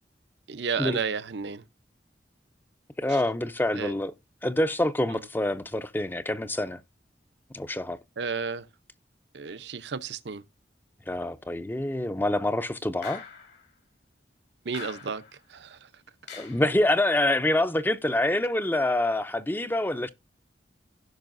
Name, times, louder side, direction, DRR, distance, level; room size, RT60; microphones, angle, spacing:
voice 1, 0.5-1.7 3.1-3.2 3.7-3.9 5.1-5.2 8.2-8.7 9.3-10.4 14.6-15.2 15.5-15.9, right 5 dB, 75° right, 0.7 m, -32 dB
voice 2, 3.0-4.1 4.4-6.8 7.5-8.0 11.1-13.2 16.3-20.1, left 1 dB, 10° left, 0.5 m, -26 dB
sound 1, 13.0-13.7 14.7-15.4 16.3-16.8, left 6 dB, 70° left, 2.5 m, -43 dB
16.5 x 5.6 x 2.5 m
head